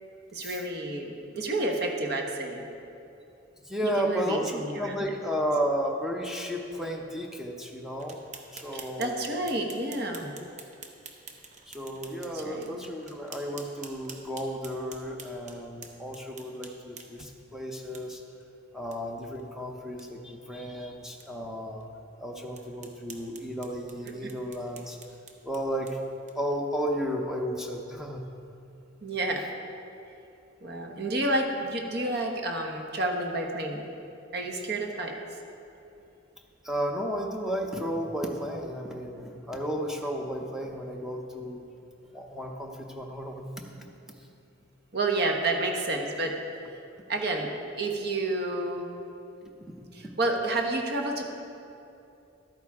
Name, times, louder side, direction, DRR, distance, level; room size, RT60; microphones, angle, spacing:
voice 1, 0.3-2.6 3.8-5.0 8.7-10.3 12.3-12.7 24.2-24.3 29.0-29.4 30.6-33.8 34.3-35.1 44.9-46.4 47.1-47.5 47.8-48.8 49.9-51.2, right 2 dB, 50° right, 2 dB, 1.1 m, -30 dB
voice 2, 3.6-8.2 8.5-9.3 10.2-10.3 11.7-18.2 18.7-21.9 22.2-25.0 25.4-26.0 26.3-28.2 36.6-41.6 42.1-43.5 44.2-44.3 49.4-49.7, equal, ahead, 1 dB, 0.7 m, -33 dB
sound 1, 8.0-17.3 17.9-18.0 18.4-18.5 18.9-19.0 19.4-19.5 19.8-20.1 20.6-20.7 21.2-21.3 21.8-21.9 22.5-26.6, right 5 dB, 35° right, 0.8 m, -48 dB
12.0 x 9.2 x 3.6 m, 2.7 s
head